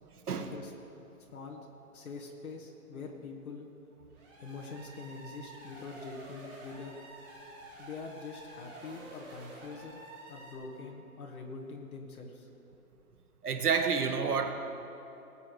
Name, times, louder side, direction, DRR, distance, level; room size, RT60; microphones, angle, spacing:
voice 1, 0.3-0.7 1.3-1.7 1.9-3.7 4.4-7.0 7.8-10.0 10.3-12.5, left 4 dB, 70° left, 0 dB, 1.7 m, -44 dB
sound 1, 4.1-10.5, right 1 dB, 15° right, 2.3 m, -50 dB
voice 2, 13.4-14.5, right 6 dB, 80° right, 7 dB, 1.2 m, -29 dB
20.0 x 8.3 x 3.2 m, 2.9 s
hypercardioid pair, 160°, 45 cm